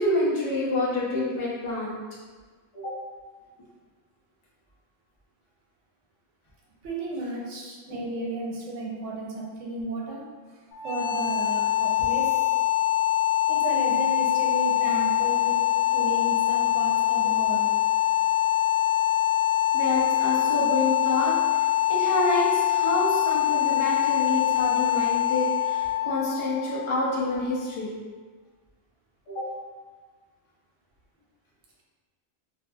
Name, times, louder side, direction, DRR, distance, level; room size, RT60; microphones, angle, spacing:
voice 1, 0.0-2.0 2.7-2.9 7.9-8.3 19.7-21.6 21.9-28.0 29.3-29.5, left 1 dB, 35° left, -6 dB, 0.5 m, -28 dB
voice 2, 6.8-10.2 10.8-12.4 13.5-15.6 15.9-17.7, right 2 dB, 80° right, -3 dB, 1.0 m, -33 dB
sound 1, 10.7-27.6, left 13 dB, 85° left, 1.0 m, -24 dB
2.6 x 2.6 x 2.3 m, 1.4 s
omnidirectional pair, 1.3 m